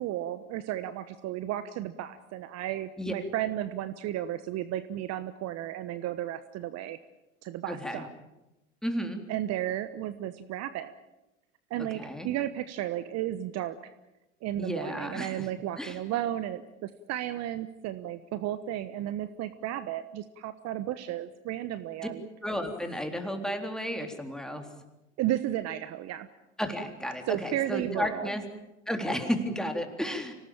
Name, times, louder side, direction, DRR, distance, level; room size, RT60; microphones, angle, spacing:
voice 1, 0.0-7.0 7.4-8.1 9.3-10.9 11.7-13.8 14.4-22.2 25.2-26.3 27.3-28.3, right 12 dB, 45° right, 13 dB, 1.2 m, -33 dB
voice 2, 7.7-8.1 8.8-9.2 11.8-12.3 14.6-15.5 15.8-16.0 22.4-24.7 26.6-28.4 28.9-30.3, equal, ahead, 5 dB, 3.7 m, -33 dB
25.5 x 18.5 x 8.8 m, 0.98 s
hypercardioid pair, 85°, 36 cm